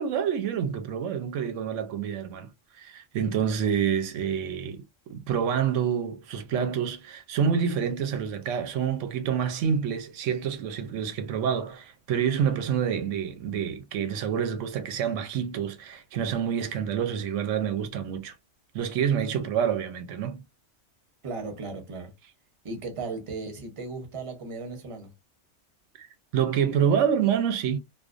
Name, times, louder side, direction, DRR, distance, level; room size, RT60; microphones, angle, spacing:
voice 1, 0.0-2.5 2.8-18.3 18.7-20.4 26.0-26.1 26.3-27.8, right 8 dB, 85° right, 0.9 m, -27 dB
voice 2, 21.2-22.1 22.6-25.1, right 3 dB, 30° right, 0.7 m, -36 dB
2.4 x 2.2 x 2.4 m
omnidirectional pair, 1.3 m